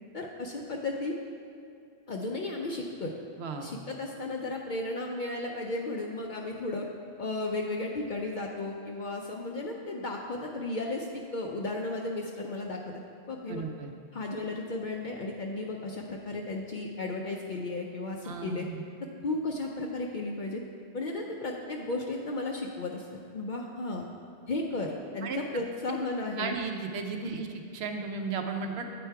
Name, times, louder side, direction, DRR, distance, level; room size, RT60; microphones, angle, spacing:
voice 1, 0.1-1.2 2.1-3.1 3.6-6.9 7.2-12.9 13.3-13.6 14.1-18.7 19.2-20.6 20.9-23.1 23.3-24.0 24.5-26.6 27.2-27.4, left 2 dB, 55° left, 0 dB, 0.5 m, -34 dB
voice 2, 3.4-3.7 13.5-13.9 18.2-18.8 25.2-25.4 25.9-26.0 26.4-27.5 27.7-28.8, right 4 dB, 70° right, 4 dB, 0.8 m, -35 dB
7.9 x 4.4 x 4.6 m, 2.4 s
omnidirectional pair, 1.2 m